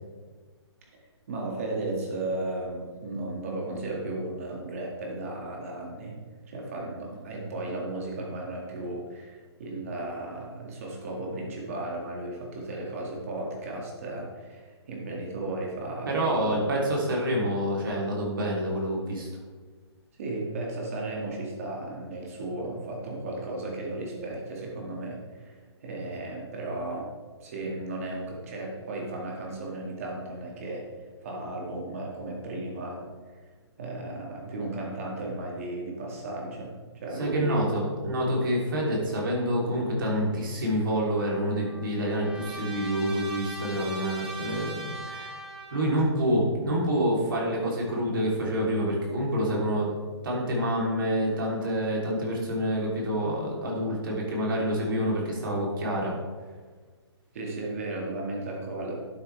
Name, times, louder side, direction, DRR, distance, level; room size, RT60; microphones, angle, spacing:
voice 1, 1.3-6.2 6.5-16.5 20.2-27.1 27.4-30.9 31.2-33.0 33.3-33.5 33.8-37.6 57.3-59.0, right 2 dB, 30° right, -1 dB, 2.1 m, -35 dB
voice 2, 16.1-19.3 37.2-45.4 45.7-49.9 50.2-56.1, equal, 50° right, -3 dB, 3.2 m, -27 dB
Trumpet, 41.2-46.1, right 2 dB, 5° right, 0.8 m, -40 dB
12.0 x 8.4 x 3.4 m, 1.4 s
hypercardioid pair, 175°, 14 cm